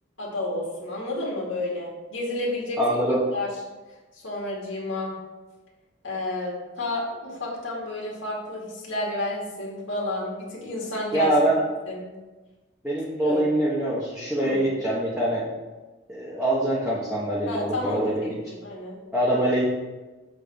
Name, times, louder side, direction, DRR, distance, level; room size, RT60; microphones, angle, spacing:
voice 1, 0.2-3.0 3.3-3.5 4.1-5.1 6.0-11.3 11.9-12.1 13.2-13.4 14.4-14.6 17.5-19.0, left 2 dB, 90° left, -3 dB, 2.6 m, -31 dB
voice 2, 2.8-3.2 11.1-11.6 12.8-15.5 16.1-18.4 19.1-19.7, right 1 dB, 5° right, -8 dB, 1.2 m, -24 dB
7.7 x 3.8 x 6.5 m, 1.2 s
head